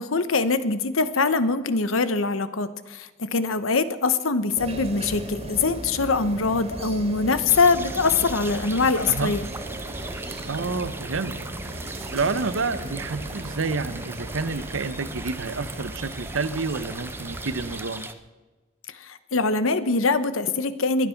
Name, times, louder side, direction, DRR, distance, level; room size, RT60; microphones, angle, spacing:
voice 1, 0.0-9.4 18.9-21.1, left 4 dB, 90° left, 13 dB, 0.9 m, -23 dB
sound 1, 4.6-17.8, right 1 dB, 30° right, 2.4 m, -37 dB
sound 2, 7.5-18.1, right 3 dB, 10° right, 0.8 m, -39 dB
voice 2, 10.5-11.3 12.1-18.1, right 4 dB, 70° right, 13 dB, 0.8 m, -29 dB
22.5 x 9.4 x 5.8 m, 1.2 s
head